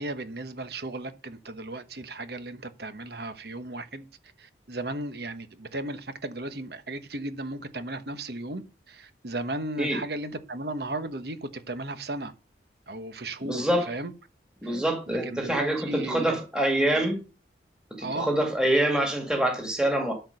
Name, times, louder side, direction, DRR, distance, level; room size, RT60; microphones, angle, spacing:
voice 1, 0.0-4.1 4.4-12.3 12.9-14.1 14.6-14.8 15.1-16.4 18.0-18.3, right 2 dB, 60° right, 1.2 m, -35 dB
voice 2, 13.4-13.9 14.6-17.2 18.0-20.1, right 1 dB, 5° right, 2.1 m, -25 dB
12.5 x 4.5 x 6.5 m
head